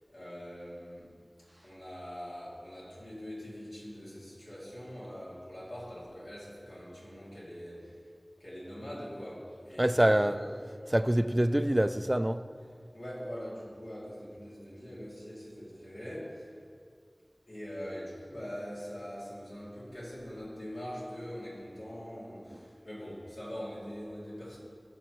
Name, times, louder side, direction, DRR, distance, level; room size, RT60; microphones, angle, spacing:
voice 1, 0.1-1.1 1.6-8.0 8.4-10.6 12.9-16.4 17.5-24.6, equal, 90° left, 2.6 m, -43 dB
voice 2, 9.8-10.3 10.9-12.4, right 1 dB, 25° right, 0.3 m, -25 dB
14.5 x 6.8 x 3.1 m
wide cardioid pair, 45°, 0 cm